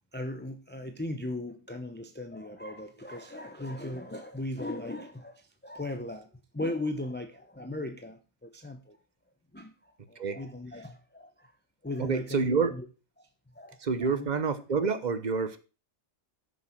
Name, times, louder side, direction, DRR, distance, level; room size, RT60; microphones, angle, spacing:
voice 1, 0.1-6.3 6.5-9.0 9.5-11.5 11.8-12.9 13.2-13.3 13.5-14.3, left 1 dB, 10° left, 0.8 m, -38 dB
voice 2, 12.0-12.7 13.8-15.6, right 5 dB, 35° right, 1.0 m, -28 dB
9.5 x 6.9 x 6.0 m
omnidirectional pair, 1.4 m